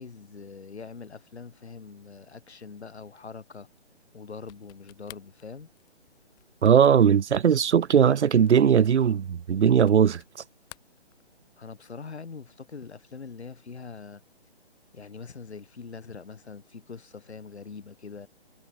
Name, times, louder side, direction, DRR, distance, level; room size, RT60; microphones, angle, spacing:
voice 1, 0.0-3.7 4.1-5.7 11.6-14.2 14.9-18.3, left 5 dB, 75° left, 3.5 m, -43 dB
sound 1, 4.4-10.4 10.6-11.6, left 22 dB, 15° left, 1.2 m, -53 dB
voice 2, 6.6-10.2, right 8 dB, 85° right, 0.6 m, -19 dB
hypercardioid pair, 155°, 33 cm